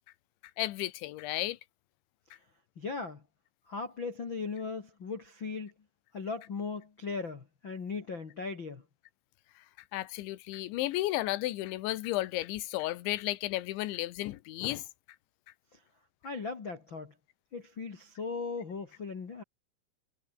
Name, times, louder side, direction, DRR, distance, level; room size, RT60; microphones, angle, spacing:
voice 1, 0.6-1.6 9.9-14.9, left 16 dB, 75° left, 3.2 m, -33 dB
voice 2, 2.7-3.2 3.7-5.7 6.1-8.8 15.7-15.8 16.2-17.1 17.5-19.4, left 4 dB, 55° left, 1.3 m, -38 dB
omnidirectional pair, 5.9 m